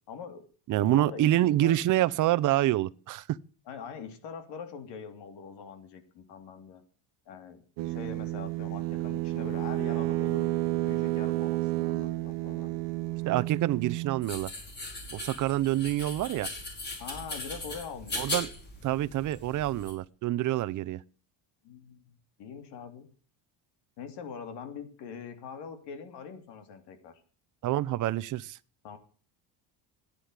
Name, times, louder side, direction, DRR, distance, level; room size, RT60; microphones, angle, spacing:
voice 1, 0.1-0.4 0.8-1.3 1.6-1.7 3.7-6.8 7.3-10.5 10.8-12.7 17.0-18.3 21.6-22.1 22.4-23.1 24.0-27.1 28.8-29.0, left 6 dB, 70° left, 3.1 m, -43 dB
voice 2, 0.7-3.4 13.3-14.5 15.1-16.5 18.2-18.5 18.8-21.0 27.6-28.6, right 14 dB, 45° right, 0.7 m, -27 dB
sound 1, 7.8-14.3, right 18 dB, 75° right, 1.0 m, -31 dB
sound 2, 14.2-19.9, left 2 dB, 25° left, 5.2 m, -39 dB
15.0 x 10.0 x 8.1 m
cardioid pair, 170°, 43 cm